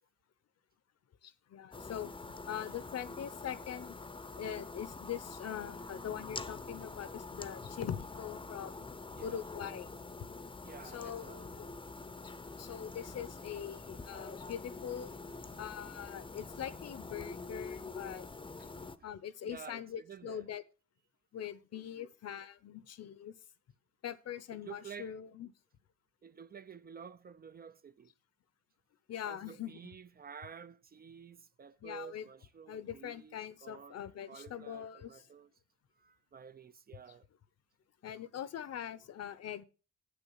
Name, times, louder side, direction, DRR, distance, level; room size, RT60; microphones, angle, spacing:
voice 1, 1.2-4.0 4.4-8.9 9.2-9.9 10.9-11.7 12.2-12.3 12.6-15.1 15.6-18.2 19.0-20.6 21.3-23.3 24.0-25.5 29.1-29.8 31.8-32.3 32.7-35.2 38.0-39.6, left 9 dB, 55° left, 0.9 m, -42 dB
sound 1, 1.7-19.0, left 3 dB, 15° left, 0.7 m, -46 dB
voice 2, 9.1-9.4 10.6-11.4 18.6-18.7 19.4-20.5 21.8-22.1 24.5-25.1 26.2-28.1 29.2-34.0 34.3-35.5 36.0-37.3, right 7 dB, 30° right, 0.5 m, -51 dB
8.1 x 6.9 x 5.5 m
cardioid pair, 90°, 30 cm